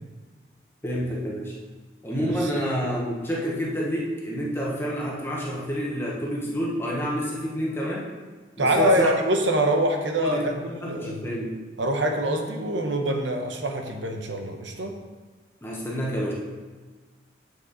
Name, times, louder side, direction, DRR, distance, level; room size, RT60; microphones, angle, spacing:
voice 1, 0.8-1.5 2.0-8.1 8.6-9.1 10.2-11.5 15.6-16.3, equal, 10° left, -4 dB, 1.2 m, -28 dB
voice 2, 8.6-11.2 11.8-14.9, right 1 dB, 80° right, 3 dB, 1.1 m, -24 dB
8.1 x 6.1 x 4.1 m, 1.3 s
head